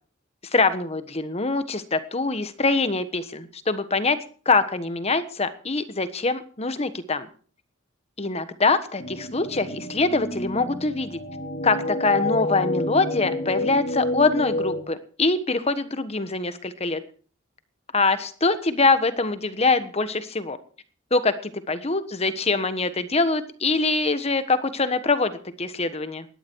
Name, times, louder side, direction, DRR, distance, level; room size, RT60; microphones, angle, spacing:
voice 1, 0.5-4.2 4.4-7.2 8.2-11.2 11.6-17.0 17.9-20.6 21.1-26.2, left 3 dB, 30° left, 12 dB, 1.3 m, -24 dB
sound 1, 9.0-14.8, left 1 dB, 50° left, 2.8 m, -29 dB
18.5 x 12.5 x 4.7 m, 0.43 s
head